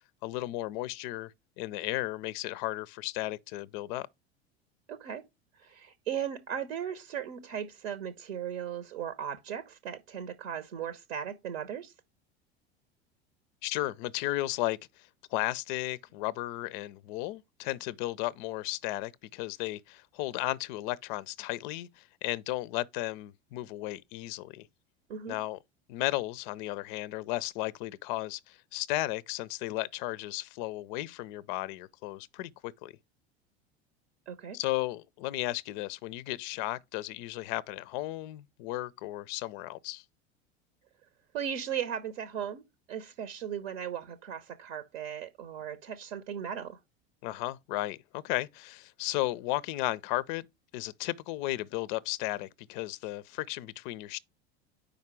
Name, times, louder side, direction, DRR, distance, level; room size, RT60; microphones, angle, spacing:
voice 1, 0.2-4.1 13.6-14.8 15.3-24.7 25.3-25.6 25.9-32.9 34.5-40.0 47.2-50.4 50.7-54.2, left 17 dB, 50° left, 0.4 m, -34 dB
voice 2, 4.9-5.2 5.6-11.9 25.1-25.4 34.3-34.6 41.3-42.6 42.9-46.8, right 8 dB, 65° right, 0.8 m, -37 dB
5.1 x 5.0 x 4.5 m
figure-of-eight pair, 80°, 33 cm